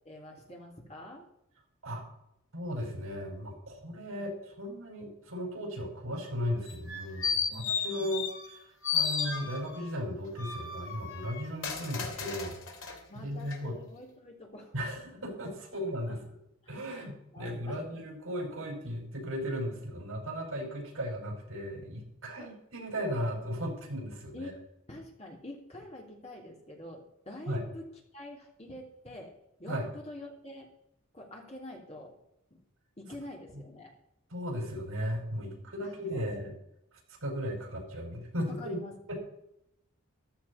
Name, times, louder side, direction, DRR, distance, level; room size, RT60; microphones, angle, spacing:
voice 1, 0.0-1.3 7.5-8.1 13.1-14.7 16.1-16.2 16.9-17.9 22.4-22.5 24.3-24.5 24.9-27.8 28.1-29.3 29.6-30.7 31.1-32.1 32.5-32.6 33.0-33.9 35.5-36.3 38.6-39.2, left 1 dB, 30° left, -1 dB, 3.1 m, -46 dB
voice 2, 2.5-8.3 8.9-12.6 13.1-13.8 14.7-16.2 16.7-24.5 27.5-27.6 29.7-29.9 34.3-36.5 37.2-38.8 39.1-39.2, equal, 75° right, 0 dB, 5.5 m, -36 dB
sound 1, 6.7-8.6 8.8-9.9 10.4-13.0 13.5-13.6, left 6 dB, 60° left, 2.7 m, -34 dB
14.5 x 12.5 x 4.1 m, 0.80 s
head